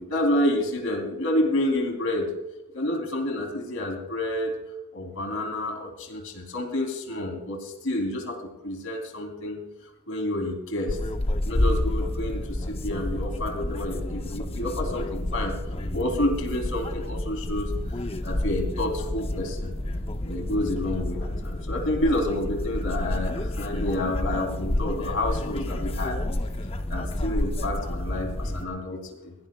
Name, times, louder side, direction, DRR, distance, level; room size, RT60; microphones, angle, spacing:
voice 1, 0.0-2.3 2.7-4.6 4.9-8.4 8.6-9.6 10.1-11.0 11.4-19.7 20.2-26.2 26.9-29.3, left 1 dB, 65° left, 2 dB, 3.3 m, -29 dB
sound 1, 10.9-28.7, left 1 dB, 25° left, 0.7 m, -29 dB
22.5 x 17.5 x 2.3 m, 0.98 s
head